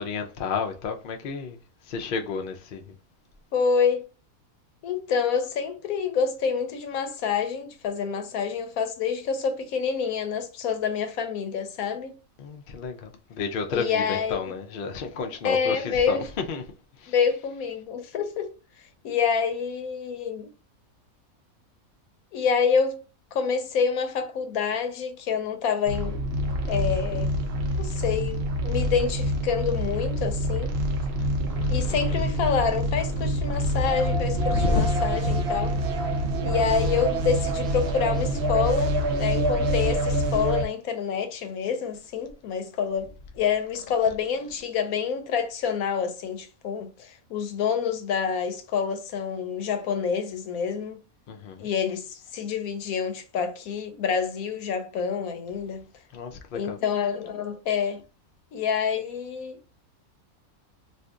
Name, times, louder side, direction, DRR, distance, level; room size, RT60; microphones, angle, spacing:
voice 1, 0.0-1.6 1.9-2.9 12.4-16.6 17.0-17.1 31.2-31.3 31.6-32.2 34.5-34.9 51.3-51.7 56.1-56.8, left 4 dB, 60° left, 0.5 m, -31 dB
voice 2, 3.5-4.1 4.8-12.2 13.7-14.4 15.4-16.3 17.1-18.5 19.0-20.5 22.3-23.0 23.3-26.2 26.5-27.3 27.8-30.7 31.7-35.7 36.4-51.0 51.6-55.8 56.5-58.0 58.5-59.6, left 6 dB, 80° left, 1.1 m, -27 dB
sound 1, 25.9-40.6, equal, 60° right, 0.7 m, -26 dB
sound 2, 31.4-38.4, right 1 dB, 80° right, 1.0 m, -39 dB
2.7 x 2.4 x 3.5 m
omnidirectional pair, 1.5 m